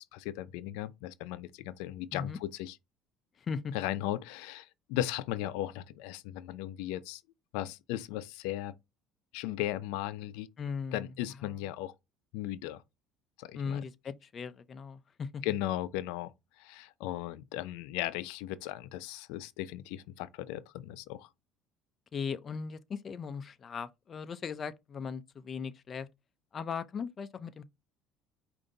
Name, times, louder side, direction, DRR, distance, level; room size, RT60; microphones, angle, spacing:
voice 1, 0.1-2.7 3.7-7.2 7.5-8.7 9.3-10.5 10.9-11.9 12.3-12.8 13.4-13.8 15.4-16.3 16.6-21.3, left 14 dB, 85° left, 0.4 m, -36 dB
voice 2, 3.4-3.7 10.6-11.5 13.5-15.4 22.1-26.1 26.5-27.6, left 6 dB, 30° left, 0.4 m, -38 dB
5.1 x 2.6 x 3.8 m
cardioid pair, 135°, 0 cm